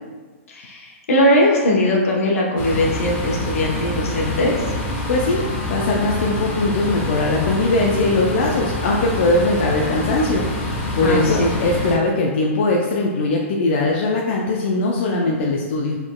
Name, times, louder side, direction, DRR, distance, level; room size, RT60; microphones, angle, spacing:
voice 1, 0.5-4.8 11.0-11.5, left 1 dB, 75° left, -1 dB, 1.0 m, -20 dB
sound 1, 2.6-12.0, left 1 dB, 35° left, 0.9 m, -26 dB
voice 2, 5.1-5.4 5.7-10.4 10.9-16.0, left 2 dB, 50° left, -1 dB, 0.4 m, -20 dB
5.0 x 3.6 x 2.2 m, 1.3 s
hypercardioid pair, 165°, 8 cm